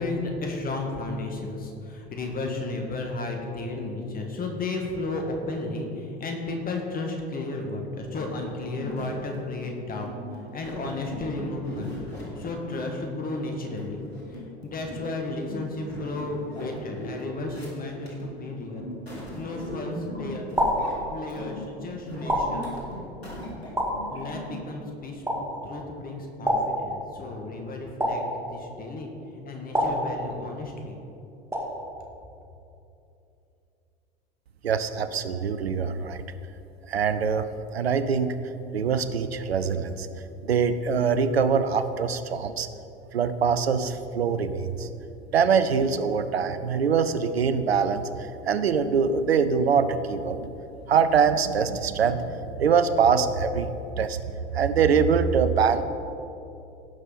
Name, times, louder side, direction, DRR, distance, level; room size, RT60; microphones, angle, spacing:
voice 1, 0.0-10.1 10.5-14.0 14.3-18.9 19.3-20.5 21.1-23.0 24.1-29.1 29.4-31.0, left 2 dB, 30° left, 2 dB, 1.6 m, -33 dB
sound 1, 8.1-24.6, equal, 90° left, 2.0 m, -40 dB
sound 2, 19.4-19.9 20.6-21.5 22.3-23.2 23.8-24.6 25.3-25.9 26.5-27.4 28.0-28.9 29.7-30.7 31.5-32.1, equal, 10° right, 2.5 m, -29 dB
voice 2, 34.6-36.2 36.9-38.3 38.7-40.1 40.4-42.7 43.1-44.9 45.3-48.1 48.5-50.6 50.9-53.7 54.0-54.2 54.5-55.8, right 6 dB, 85° right, 11 dB, 0.6 m, -23 dB
16.5 x 5.6 x 4.0 m, 2.8 s
figure-of-eight pair, 80°, 30 cm